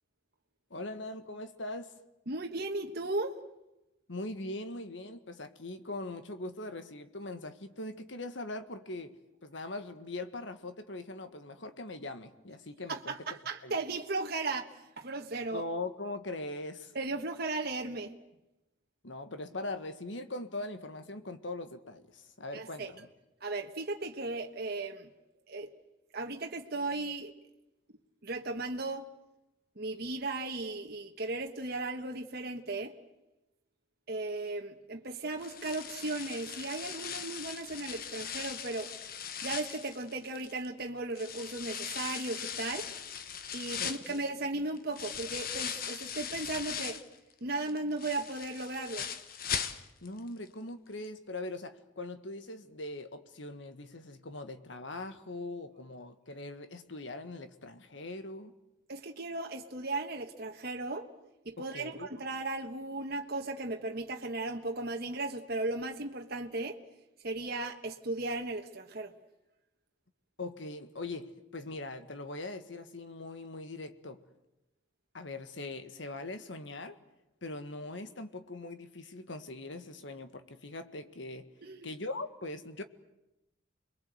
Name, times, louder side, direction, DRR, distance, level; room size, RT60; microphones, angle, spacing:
voice 1, 0.7-1.9 4.1-9.1 9.4-13.1 13.6-13.8 15.5-16.9 19.0-23.1 43.8-44.2 50.0-58.5 61.6-62.1 70.4-74.2 75.1-77.0 77.4-81.5 81.8-82.8, left 2 dB, 65° left, 9 dB, 1.7 m, -41 dB
voice 2, 2.3-3.4 12.9-14.7 15.0-15.6 16.9-18.1 22.5-22.9 23.4-25.1 25.5-25.7 26.1-27.3 28.2-29.1 29.8-32.9 34.1-38.9 39.4-42.9 43.5-47.0 47.4-49.1 58.9-61.1 61.4-66.8 67.2-69.1 81.6-81.9, right 2 dB, 50° right, 2 dB, 1.5 m, -36 dB
sound 1, 35.4-40.7 41.2-47.2 47.6-50.2 50.5-50.6 51.0-51.1, left 8 dB, 50° left, 1.3 m, -39 dB
29.5 x 22.5 x 8.1 m, 0.95 s
head